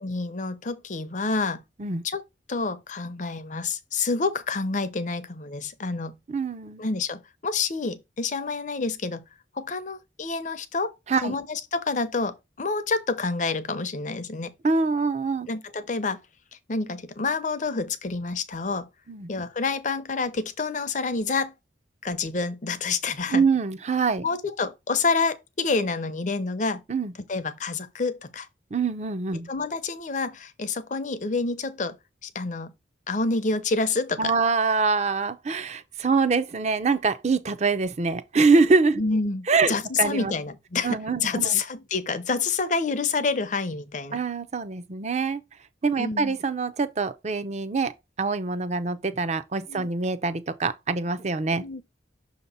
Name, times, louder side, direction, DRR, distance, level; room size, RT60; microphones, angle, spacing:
voice 1, 0.0-1.6 2.0-2.2 2.5-6.2 6.8-9.2 9.5-10.9 11.2-14.5 15.5-16.2 16.7-18.9 19.3-21.5 22.0-23.4 24.2-26.8 27.3-28.5 29.5-32.0 32.2-32.7 33.1-34.3 39.0-44.2 46.0-46.4 49.7-49.9 51.6-51.8, left 4 dB, 40° left, 0.6 m, -28 dB
voice 2, 6.3-6.8 11.1-11.3 14.6-15.5 19.1-19.3 23.3-24.3 26.9-27.1 28.7-29.5 34.2-39.0 39.5-40.3 40.8-41.6 44.1-45.4 45.8-51.6, right 4 dB, 35° right, 0.6 m, -24 dB
6.4 x 2.9 x 5.4 m
head